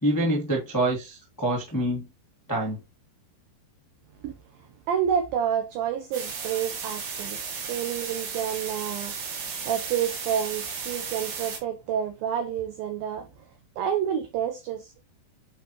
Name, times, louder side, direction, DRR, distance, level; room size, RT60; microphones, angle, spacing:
voice 1, 0.0-2.1 2.5-2.8, right 1 dB, 15° left, 0.7 m, -26 dB
voice 2, 4.9-7.4 7.7-9.2 9.7-13.3 13.8-15.0, right 8 dB, 75° right, 2.3 m, -29 dB
sound 1, 6.1-11.6, right 5 dB, 90° right, 4.8 m, -34 dB
8.4 x 5.0 x 3.1 m
omnidirectional pair, 5.1 m